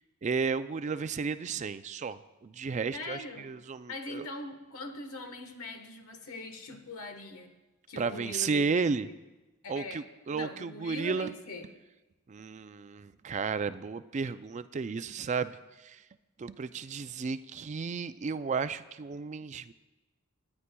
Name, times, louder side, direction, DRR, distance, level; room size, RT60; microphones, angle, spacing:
voice 1, 0.2-4.3 8.0-9.1 9.7-11.3 12.3-15.6 15.8-16.0 16.4-19.7, right 5 dB, 35° right, 12 dB, 0.3 m, -33 dB
voice 2, 2.9-3.5 3.9-7.5 7.9-8.7 9.0-9.2 9.6-11.7, left 2 dB, 85° left, 6 dB, 1.3 m, -42 dB
27.0 x 9.8 x 2.3 m, 1.1 s
head